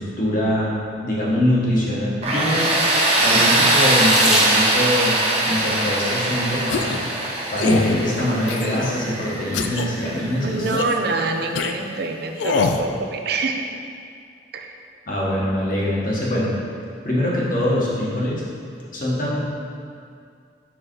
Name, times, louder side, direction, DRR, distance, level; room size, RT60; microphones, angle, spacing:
voice 1, 0.0-2.7 3.2-7.0 7.5-10.7 15.1-16.5 17.0-18.4 18.9-19.4, left 1 dB, 50° left, -5 dB, 1.3 m, -23 dB
Tools, 2.2-11.0, right 1 dB, 35° right, 0.9 m, -21 dB
Water tap faucet / Sink (filling or washing), 3.8-5.0 6.1-6.5 7.2-7.3 7.6-7.7, equal, 5° right, 0.8 m, -26 dB
sound 1, 6.7-7.0 7.6-7.9 8.5-9.0 9.5-9.9 10.6-11.0 11.6-11.7 12.4-12.8, left 5 dB, 80° left, 0.4 m, -24 dB
voice 2, 10.4-13.7 14.5-14.7, right 3 dB, 60° right, 4 dB, 0.5 m, -25 dB
5.0 x 4.7 x 4.5 m, 2.3 s
head